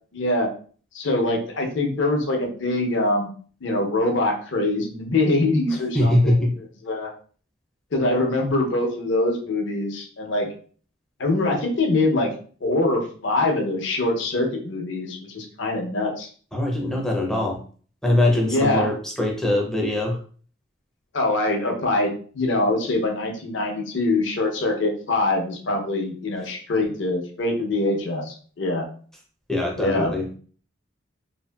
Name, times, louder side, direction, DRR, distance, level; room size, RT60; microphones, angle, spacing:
voice 1, 0.1-0.5 0.9-3.3 3.6-6.4 6.8-7.1 7.9-10.5 11.2-12.3 12.6-16.3 18.4-18.9 21.1-28.9 29.8-30.1, left 2 dB, 65° left, 2 dB, 0.6 m, -23 dB
voice 2, 5.9-6.5 16.5-17.6 18.0-20.2 29.5-30.3, left 1 dB, 5° left, -1 dB, 0.4 m, -22 dB
2.6 x 2.6 x 2.2 m, 0.43 s
head